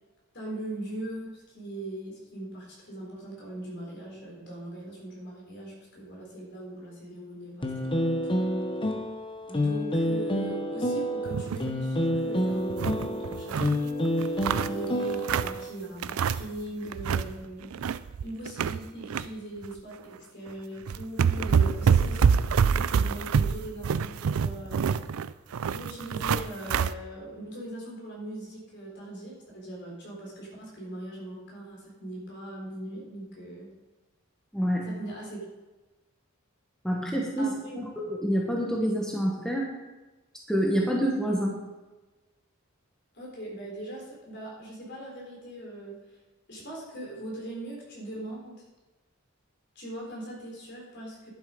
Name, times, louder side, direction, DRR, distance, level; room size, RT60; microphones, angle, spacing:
voice 1, 0.3-8.4 9.4-17.9 18.2-20.0 20.3-24.8 25.7-33.7 34.8-35.4 37.4-37.8 43.1-46.0 46.5-48.5 49.8-51.3, right 1 dB, 55° left, -3 dB, 4.0 m, -40 dB
sound 1, 7.6-15.7, equal, 25° left, 1.0 m, -28 dB
sound 2, 11.3-11.7 12.1-12.2 12.5-13.8 14.2-15.6 16.0-16.6 16.9-17.3 17.6-19.3 19.6-19.8 20.5-20.6 20.9-26.9, right 6 dB, 80° right, 0.4 m, -26 dB
voice 2, 34.5-34.9 36.8-39.7 40.5-41.6, equal, 5° left, -2 dB, 1.2 m, -27 dB
11.0 x 7.4 x 5.2 m, 1.2 s
head